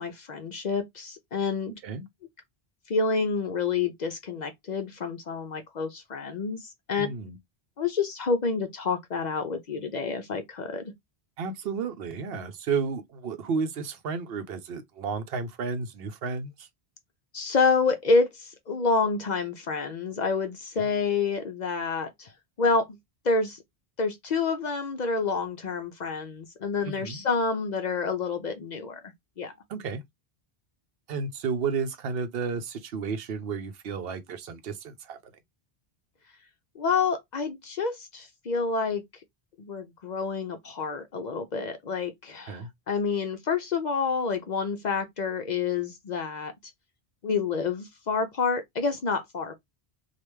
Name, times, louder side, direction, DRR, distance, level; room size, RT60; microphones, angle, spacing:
voice 1, 0.0-1.7 2.9-7.1 7.8-10.8 17.3-22.3 22.6-22.9 23.2-23.6 24.0-29.0 29.4-29.5 36.8-39.0 39.6-46.5 47.2-49.6, left 4 dB, 55° left, 0.6 m, -28 dB
voice 2, 7.0-7.4 11.4-16.7 20.8-20.9 26.8-27.2 29.7-30.0 31.1-35.3 42.5-42.7, right 5 dB, 70° right, 0.8 m, -32 dB
3.2 x 2.3 x 3.0 m
omnidirectional pair, 1.0 m